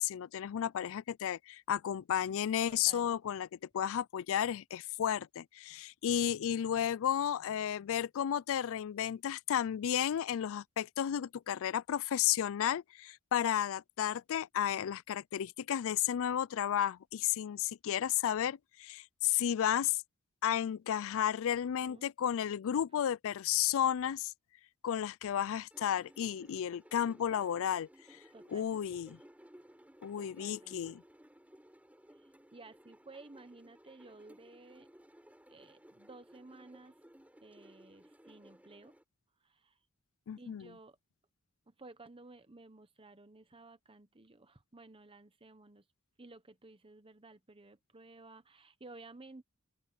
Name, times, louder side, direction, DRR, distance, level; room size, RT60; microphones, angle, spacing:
voice 1, 0.0-3.5 3.7-20.0 20.4-24.3 24.8-27.9 28.5-29.2 30.0-31.0 40.3-40.7, left 10 dB, 65° left, 0.4 m, -33 dB
voice 2, 2.7-3.1 21.5-22.1 28.3-28.7 30.2-31.0 32.5-34.9 35.5-37.0 37.4-38.9 39.4-39.7 40.4-41.0 41.7-45.8 46.2-49.4, right 2 dB, 25° right, 1.1 m, -55 dB
sound 1, 25.7-39.0, equal, 5° right, 4.4 m, -59 dB
open air
head